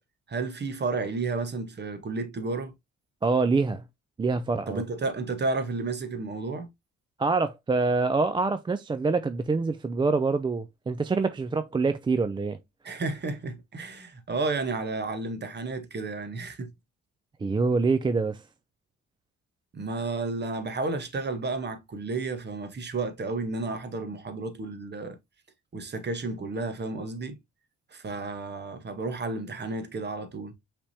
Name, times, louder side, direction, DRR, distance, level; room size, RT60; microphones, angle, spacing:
voice 1, 0.3-2.7 4.7-6.7 12.8-16.7 19.7-25.2 25.7-27.4 27.9-30.5, right 3 dB, 35° right, 1.1 m, -32 dB
voice 2, 3.2-3.8 4.2-4.8 7.2-12.6 17.4-18.4, right 4 dB, 15° right, 0.3 m, -25 dB
5.6 x 3.5 x 2.7 m
cardioid pair, 90°, 30 cm